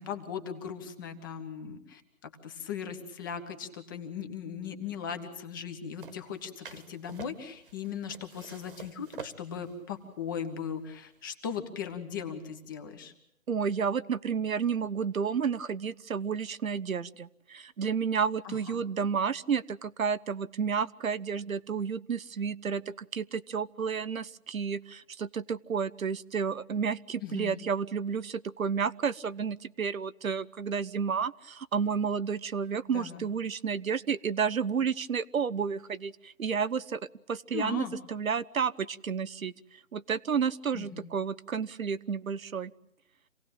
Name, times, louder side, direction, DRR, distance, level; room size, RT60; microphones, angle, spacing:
voice 1, 0.0-13.1 18.4-18.8 27.2-27.6 32.9-33.2 37.5-37.9 40.7-41.1, left 7 dB, 15° left, 7 dB, 1.2 m, -38 dB
sound 1, 6.0-11.3, right 6 dB, 40° right, 1.6 m, -48 dB
voice 2, 13.5-37.0 37.3-39.5 39.9-42.7, right 6 dB, 75° right, 14 dB, 0.9 m, -31 dB
27.0 x 18.0 x 8.9 m, 0.78 s
figure-of-eight pair, 160°, 42 cm